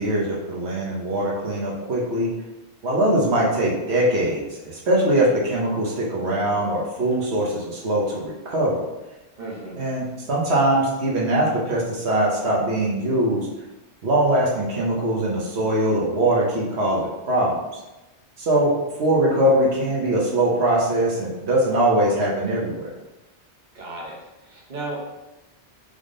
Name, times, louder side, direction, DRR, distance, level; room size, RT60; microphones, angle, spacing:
voice 1, 0.0-2.3 2.8-8.8 9.8-13.5 14.0-17.5 18.4-18.7 19.0-22.9, right 1 dB, 70° right, -4 dB, 1.2 m, -22 dB
voice 2, 9.4-9.8 23.7-25.1, right 2 dB, 45° right, -3 dB, 1.0 m, -34 dB
3.6 x 3.5 x 3.7 m, 1.0 s
omnidirectional pair, 1.2 m